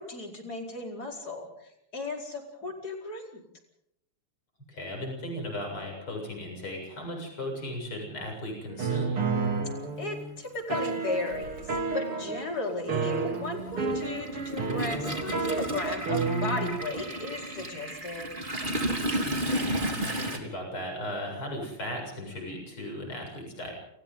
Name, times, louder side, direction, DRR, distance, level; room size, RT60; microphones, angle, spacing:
voice 1, 0.0-3.4 10.0-18.3, left 2 dB, 45° left, 1 dB, 5.4 m, -36 dB
voice 2, 4.7-9.2 19.2-23.7, left 1 dB, 70° left, 1 dB, 8.7 m, -37 dB
sound 1, 8.7-10.3 10.7-12.5 12.9-16.8, right 4 dB, 80° right, 4.3 m, -31 dB
Toilet flush, 9.9-10.0 11.3-11.4 11.8-20.4, right 1 dB, 20° right, 3.5 m, -33 dB
30.0 x 28.5 x 3.9 m, 0.79 s
omnidirectional pair, 2.4 m